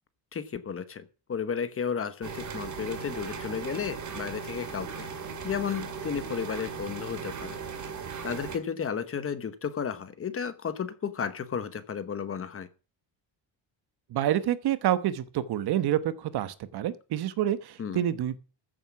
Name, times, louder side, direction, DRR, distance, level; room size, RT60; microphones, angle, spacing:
voice 1, 0.3-5.1 5.4-7.9 8.2-12.7 17.8-18.0, left 7 dB, 30° left, 1.0 m, -33 dB
sound 1, 2.2-8.6, right 6 dB, 40° right, 2.2 m, -38 dB
voice 2, 14.1-18.4, right 11 dB, 55° right, 1.1 m, -28 dB
14.5 x 7.7 x 6.0 m
cardioid pair, 165°, 46 cm